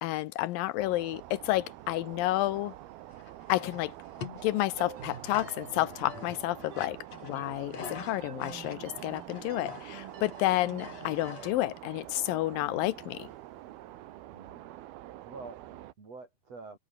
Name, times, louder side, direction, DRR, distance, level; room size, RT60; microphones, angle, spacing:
voice 1, 0.0-2.7 3.5-3.9 4.4-7.0 7.2-13.3, left 16 dB, 80° left, 2.3 m, -30 dB
sound 1, 0.8-15.9, right 15 dB, 90° right, 3.0 m, -46 dB
sound 2, 3.1-11.5, left 7 dB, 45° left, 3.5 m, -46 dB
sound 3, 4.8-11.6, right 8 dB, 75° right, 4.6 m, -49 dB
voice 2, 14.3-14.7 15.2-16.8, right 4 dB, 40° right, 5.9 m, -47 dB
omnidirectional pair, 4.3 m